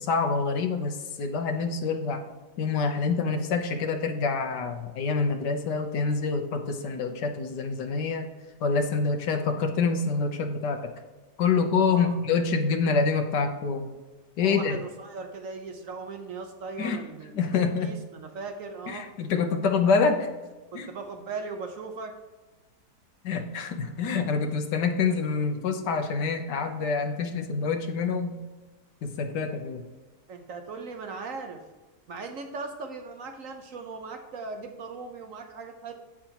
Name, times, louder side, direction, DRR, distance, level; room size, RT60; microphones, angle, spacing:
voice 1, 0.0-2.2 2.6-8.3 8.6-10.9 11.4-13.9 14.4-14.8 16.8-17.0 17.3-18.0 18.9-20.3 20.7-20.9 23.2-28.4 29.0-29.8, left 4 dB, 80° left, 5 dB, 1.5 m, -26 dB
voice 2, 11.9-12.2 14.4-19.1 20.7-22.1 29.6-29.7 30.3-31.6 32.1-35.9, right 4 dB, 60° right, 5 dB, 1.1 m, -39 dB
15.0 x 5.0 x 2.9 m, 1.2 s
omnidirectional pair, 1.8 m